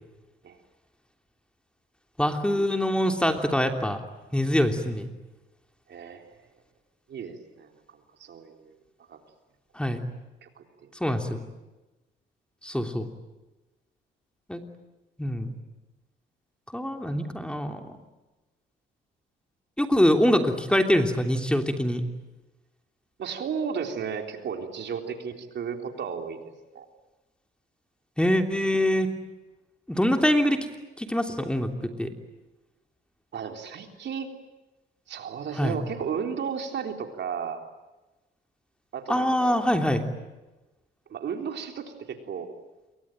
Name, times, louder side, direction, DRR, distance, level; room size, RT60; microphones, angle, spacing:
voice 1, 2.2-4.0 4.3-5.1 9.7-10.0 11.0-11.4 12.6-13.1 14.5-14.6 15.2-15.5 16.7-17.8 19.8-22.0 28.2-29.1 29.9-30.6 31.0-32.1 35.6-35.8 39.1-40.0, equal, 5° left, 5 dB, 3.2 m, -24 dB
voice 2, 5.9-6.3 7.1-7.7 8.2-8.7 9.1-9.2 10.4-10.9 23.2-26.9 33.3-34.3 35.1-37.6 38.9-39.6 41.1-42.5, right 6 dB, 60° right, 4 dB, 3.8 m, -34 dB
28.0 x 23.5 x 9.0 m, 1.1 s
cardioid pair, 90°, 20 cm